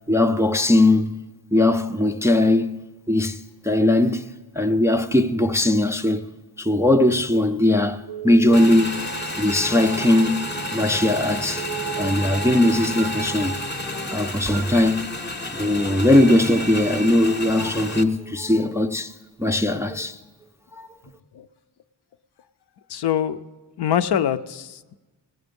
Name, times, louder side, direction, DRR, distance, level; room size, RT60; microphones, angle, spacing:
voice 1, 0.1-1.2 1.5-2.8 3.1-4.3 4.6-6.2 6.6-9.1 9.4-11.7 12.0-13.5 14.1-15.1 15.4-19.1 19.4-20.2 20.7-20.9, left 1 dB, 5° right, 0.4 m, -20 dB
Telephone, 8.1-8.6 11.6-12.1 13.0-13.3 14.5-14.8 16.1-17.1, right 10 dB, 80° right, 0.6 m, -35 dB
Motorcycle / Engine, 8.5-18.0, equal, 25° left, 0.7 m, -30 dB
voice 2, 22.9-23.4 23.8-24.9, left 9 dB, 65° left, 0.5 m, -24 dB
18.0 x 7.9 x 5.3 m
wide cardioid pair, 95°, 44 cm